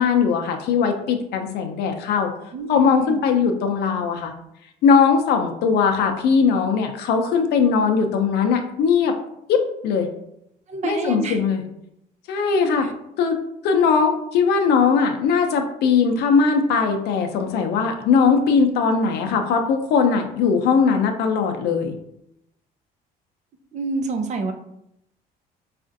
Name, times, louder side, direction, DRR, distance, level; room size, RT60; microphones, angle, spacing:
voice 1, 0.0-2.3 2.7-4.3 4.8-9.2 9.5-10.1 10.8-11.6 12.3-12.9 13.2-13.4 13.6-21.9, left 5 dB, 75° left, 5 dB, 0.5 m, -19 dB
voice 2, 2.5-3.2 10.7-11.4 12.8-12.9 23.7-24.5, right 3 dB, 45° right, 7 dB, 0.5 m, -27 dB
4.2 x 2.4 x 2.6 m, 0.79 s
cardioid pair, 110°, 17 cm